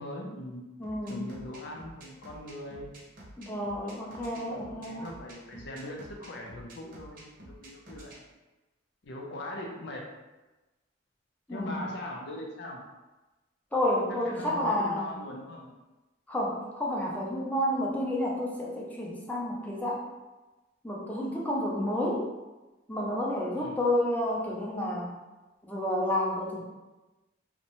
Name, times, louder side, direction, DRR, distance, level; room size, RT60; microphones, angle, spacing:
voice 1, 0.0-0.6 1.0-2.9 4.2-8.2 9.0-10.0 11.5-12.8 14.1-15.7 23.5-23.8, left 1 dB, 65° left, 0 dB, 0.5 m, -41 dB
voice 2, 0.8-1.3 3.4-5.1 11.5-11.7 13.7-15.1 16.3-20.0 20.8-22.3 22.9-25.2 25.7-26.6, left 1 dB, 10° left, -3 dB, 0.4 m, -30 dB
sound 1, 0.8-8.2, right 1 dB, 50° right, 0.7 m, -49 dB
2.7 x 2.1 x 2.9 m, 1.1 s
head